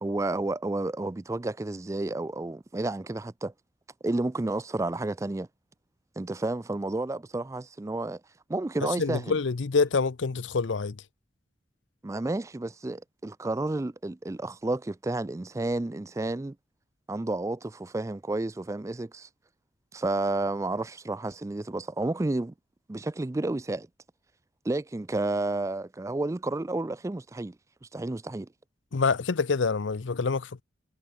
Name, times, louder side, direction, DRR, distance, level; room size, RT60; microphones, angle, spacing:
voice 1, 0.0-3.5 4.0-5.5 6.2-8.2 8.5-9.4 12.0-16.6 17.1-19.3 19.9-22.5 22.9-23.9 24.6-27.6 27.8-28.5, right 2 dB, 15° right, 0.3 m, -31 dB
voice 2, 9.0-11.0 28.9-30.6, left 4 dB, 70° left, 0.6 m, -26 dB
head